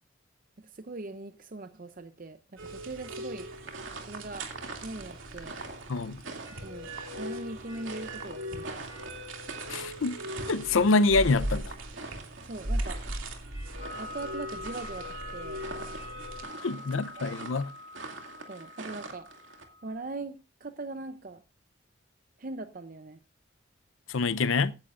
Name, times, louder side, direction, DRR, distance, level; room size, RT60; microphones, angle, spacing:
voice 1, 0.6-3.5 4.1-4.5 4.8-5.6 6.6-6.9 7.2-8.9 12.4-13.0 14.0-15.6 16.9-17.3 18.5-19.3 19.8-21.4 22.4-23.2, right 2 dB, 45° right, 0.6 m, -40 dB
sound 1, 2.6-16.4, right 1 dB, 90° right, 2.6 m, -38 dB
sound 2, 3.4-19.6, right 3 dB, 70° right, 2.5 m, -45 dB
voice 2, 5.9-6.2 9.7-10.2 10.5-11.7 16.6-17.7 24.1-24.7, left 3 dB, 80° left, 0.6 m, -26 dB
sound 3, 13.8-19.9, left 2 dB, 45° left, 5.3 m, -45 dB
16.0 x 10.5 x 2.5 m
head